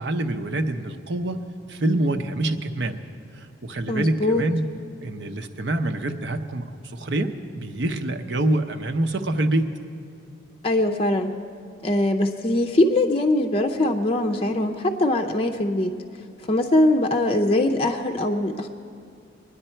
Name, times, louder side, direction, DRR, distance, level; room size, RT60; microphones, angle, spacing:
voice 1, 0.0-1.4 1.7-3.0 3.3-4.6 5.0-6.6 6.9-9.7, right 1 dB, 65° right, 6 dB, 0.8 m, -26 dB
voice 2, 3.9-4.4 10.6-11.3 11.8-15.9 16.4-18.7, left 1 dB, 30° left, 4 dB, 0.5 m, -22 dB
23.5 x 9.8 x 4.5 m, 2.4 s
head